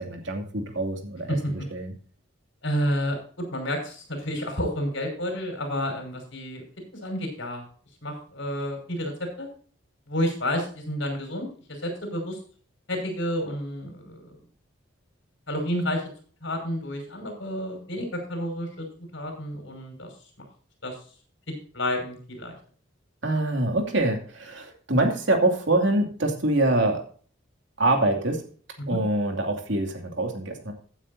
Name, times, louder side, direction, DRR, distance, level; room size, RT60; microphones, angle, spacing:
voice 1, 0.0-1.9 23.2-27.0 27.8-28.4 28.9-30.7, right 2 dB, 70° right, 3 dB, 2.6 m, -25 dB
voice 2, 2.6-6.6 7.0-7.6 8.0-9.5 10.1-11.5 11.8-12.4 12.9-14.4 15.5-16.0 16.4-18.9 19.1-20.1 20.8-21.0 21.7-22.5 28.8-29.0, equal, 70° left, 4 dB, 5.6 m, -30 dB
15.5 x 9.2 x 2.7 m, 0.43 s
head